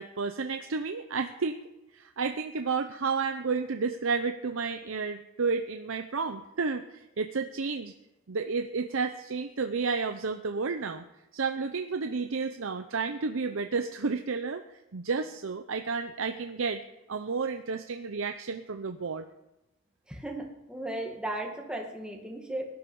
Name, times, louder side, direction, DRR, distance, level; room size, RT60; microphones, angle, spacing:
voice 1, 0.0-1.6 1.9-7.9 8.3-11.1 11.3-14.6 14.9-19.2, right 4 dB, 80° right, 7 dB, 0.7 m, -31 dB
voice 2, 20.1-22.7, right 1 dB, 5° right, 1 dB, 1.9 m, -36 dB
18.0 x 11.5 x 5.4 m, 0.95 s
head